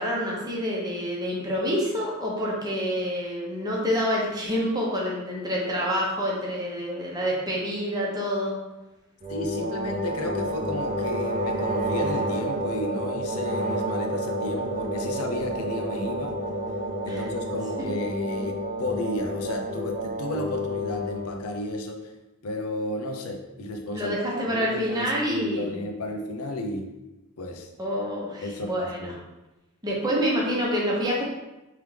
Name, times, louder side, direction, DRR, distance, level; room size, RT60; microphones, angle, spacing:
voice 1, 0.0-8.5 17.1-17.2 23.9-25.8 27.8-29.1 29.8-31.2, equal, 20° right, -4 dB, 0.9 m, -27 dB
sound 1, 9.2-21.4, equal, 35° right, 0.4 m, -29 dB
voice 2, 9.3-16.4 17.1-22.1 22.4-24.2 24.5-26.9 27.4-27.7 28.4-29.2, left 1 dB, 75° left, 4 dB, 0.6 m, -33 dB
3.6 x 3.3 x 3.3 m, 1.0 s
head